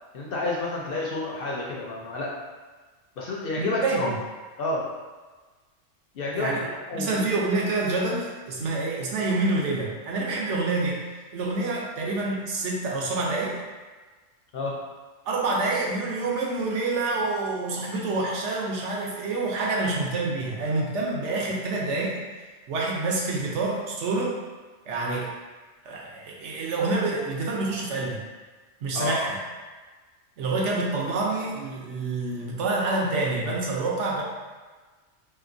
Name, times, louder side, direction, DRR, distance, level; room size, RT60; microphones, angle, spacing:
voice 1, 0.1-2.3 3.2-4.1 4.6-4.8 6.1-7.3 8.6-8.7 14.5-14.8 28.9-29.3, left 2 dB, 60° left, -3 dB, 0.6 m, -30 dB
voice 2, 3.6-4.1 6.3-6.6 6.9-11.0 11.3-13.6 15.3-22.2 22.7-24.4 24.9-25.3 25.8-28.2 28.8-29.4 30.4-34.2, right 3 dB, 75° right, -3 dB, 0.9 m, -27 dB
3.1 x 2.8 x 2.5 m, 1.3 s
omnidirectional pair, 1.3 m